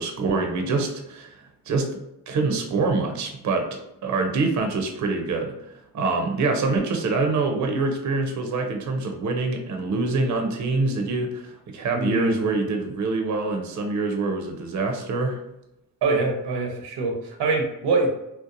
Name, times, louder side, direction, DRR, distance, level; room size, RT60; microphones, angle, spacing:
voice 1, 0.0-1.4 1.7-1.9 2.3-5.5 5.9-15.4, right 3 dB, 45° right, 3 dB, 0.6 m, -25 dB
voice 2, 11.9-12.3 16.0-18.1, right 3 dB, 90° right, 1 dB, 0.7 m, -24 dB
2.7 x 2.1 x 2.5 m, 0.87 s
cardioid pair, 85°, 39 cm